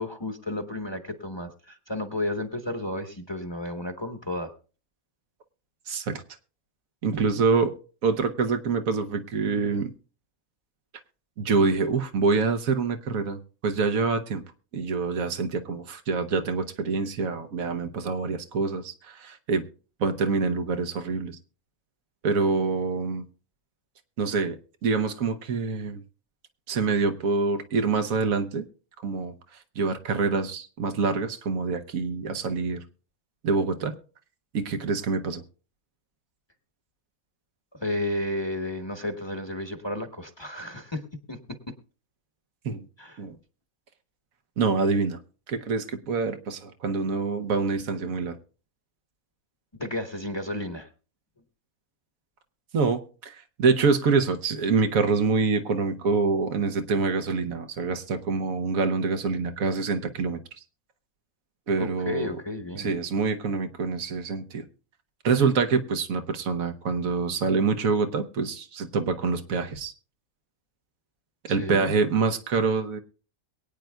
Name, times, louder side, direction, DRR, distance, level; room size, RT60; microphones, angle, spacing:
voice 1, 0.0-4.5 37.7-41.7 43.0-43.2 49.8-50.9 61.8-62.9 71.5-71.9, left 1 dB, 20° left, 6 dB, 1.0 m, -32 dB
voice 2, 5.9-6.2 7.0-7.7 8.0-9.9 11.4-14.4 14.7-19.6 20.0-21.4 22.2-23.2 24.2-26.0 26.7-28.6 29.0-29.3 29.8-32.8 33.4-33.9 34.5-35.4 42.6-42.8 43.2-43.3 44.6-45.2 45.5-48.3 52.7-60.4 61.7-62.4 62.8-64.6 65.2-69.9 71.5-73.0, right 4 dB, 75° right, 7 dB, 1.4 m, -26 dB
22.5 x 9.1 x 2.3 m, 0.37 s
omnidirectional pair, 1.5 m